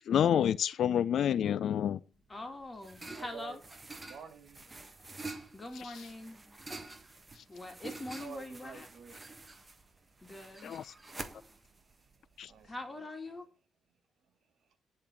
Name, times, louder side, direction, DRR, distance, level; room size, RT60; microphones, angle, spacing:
voice 1, 0.1-2.0 10.6-10.8 12.4-12.5, left 9 dB, 65° left, 0.4 m, -28 dB
sound 1, 2.2-12.8, right 2 dB, 20° right, 1.3 m, -48 dB
voice 2, 2.3-3.6 5.5-6.4 7.5-8.9 10.2-10.7 12.6-13.5, left 1 dB, 20° left, 2.5 m, -43 dB
voice 3, 3.1-3.6 3.9-4.7 8.2-9.2 11.5-13.1 14.7-14.8, right 6 dB, 60° right, 2.1 m, -51 dB
10.0 x 4.0 x 7.3 m
cardioid pair, 90°, 0 cm